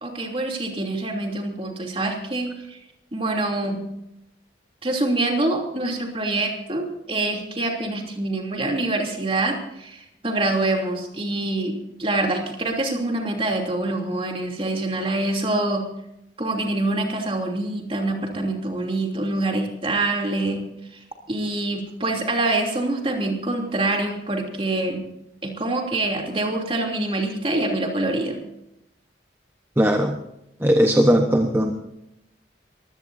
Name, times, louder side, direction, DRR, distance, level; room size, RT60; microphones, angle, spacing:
voice 1, 0.0-2.8 3.1-3.8 4.8-15.9 16.4-25.1 25.4-28.4, right 2 dB, 30° right, 1 dB, 3.0 m, -25 dB
voice 2, 29.8-30.2 30.6-31.7, equal, 10° right, 3 dB, 1.1 m, -18 dB
23.0 x 16.5 x 2.7 m, 0.84 s
head